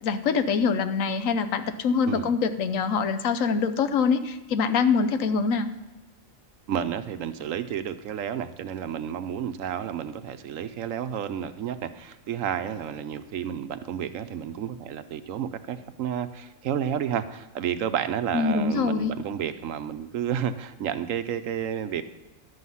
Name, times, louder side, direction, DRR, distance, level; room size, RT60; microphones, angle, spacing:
voice 1, 0.0-5.7 18.3-19.2, left 5 dB, 80° left, 10 dB, 1.1 m, -24 dB
voice 2, 6.7-22.0, right 9 dB, 75° right, 12 dB, 1.0 m, -31 dB
11.5 x 7.9 x 5.6 m, 1.1 s
omnidirectional pair, 1.4 m